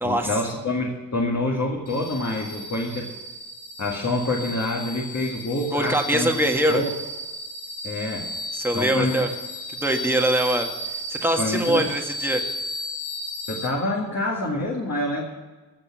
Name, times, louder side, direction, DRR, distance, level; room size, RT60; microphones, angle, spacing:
voice 1, 0.0-3.1 3.8-6.9 7.8-8.3 8.7-9.2 11.4-11.9 13.5-15.3, left 2 dB, 40° left, -2 dB, 2.1 m, -27 dB
sound 1, 1.9-13.7, equal, 70° left, 2.1 m, -34 dB
voice 2, 5.7-6.8 8.5-9.3 9.8-10.7 11.1-12.4, right 1 dB, 5° right, 2 dB, 1.6 m, -23 dB
15.0 x 6.7 x 7.5 m, 1.2 s
cardioid pair, 75°, 43 cm